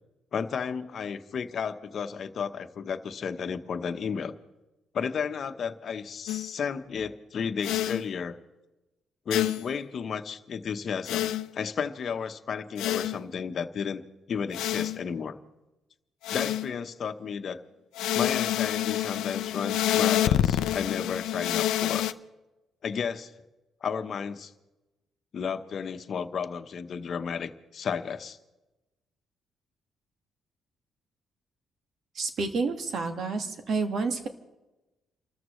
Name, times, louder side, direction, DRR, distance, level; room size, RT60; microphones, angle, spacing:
voice 1, 0.3-4.3 4.9-8.4 9.3-14.0 14.3-15.4 16.3-17.6 18.1-22.0 22.8-23.3 23.8-24.5 25.3-28.4, left 6 dB, 55° left, 8 dB, 1.0 m, -33 dB
sound 1, 6.3-6.5 7.6-8.0 9.3-9.7 11.1-11.5 12.8-13.2 14.5-15.0 16.2-16.7 17.9-22.1, left 13 dB, 90° left, 0.5 m, -27 dB
voice 2, 32.2-34.3, right 4 dB, 60° right, 6 dB, 1.9 m, -29 dB
29.0 x 13.5 x 3.2 m, 1.0 s
cardioid pair, 90°, 0 cm